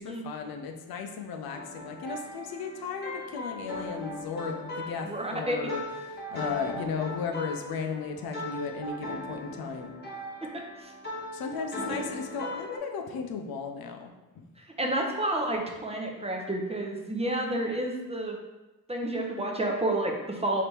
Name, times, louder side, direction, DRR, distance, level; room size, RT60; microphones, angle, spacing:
voice 1, 0.0-5.8 6.1-9.9 11.3-14.5, left 5 dB, 75° left, 4 dB, 0.6 m, -35 dB
sound 1, 1.5-12.8, left 1 dB, 30° left, 1.1 m, -39 dB
voice 2, 5.0-5.6 10.5-10.9 11.9-12.0 14.6-18.4 18.9-20.6, right 1 dB, 15° right, 1 dB, 0.7 m, -30 dB
3.4 x 2.9 x 4.3 m, 1.1 s
cardioid pair, 75°, 36 cm